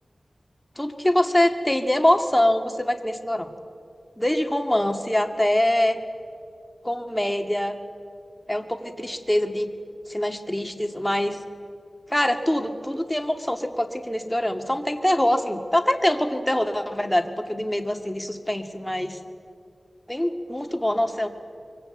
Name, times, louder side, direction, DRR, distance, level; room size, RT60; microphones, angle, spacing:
voice 1, 0.8-3.5 4.2-6.0 6.8-7.8 8.5-9.7 10.1-11.4 12.1-19.2 20.1-21.3, left 1 dB, 10° left, 5 dB, 2.3 m, -24 dB
25.5 x 23.5 x 8.0 m, 2.3 s
wide cardioid pair, 55°, 0 cm